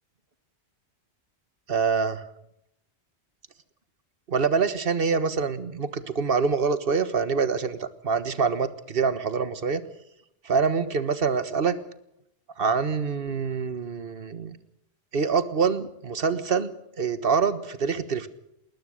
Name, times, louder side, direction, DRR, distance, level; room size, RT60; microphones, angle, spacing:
voice 1, 1.7-2.3 4.3-9.8 10.4-11.8 12.6-14.6 15.1-16.7 17.0-18.3, right 5 dB, 55° right, 12 dB, 1.6 m, -25 dB
20.5 x 20.0 x 6.5 m, 0.78 s
omnidirectional pair, 1.1 m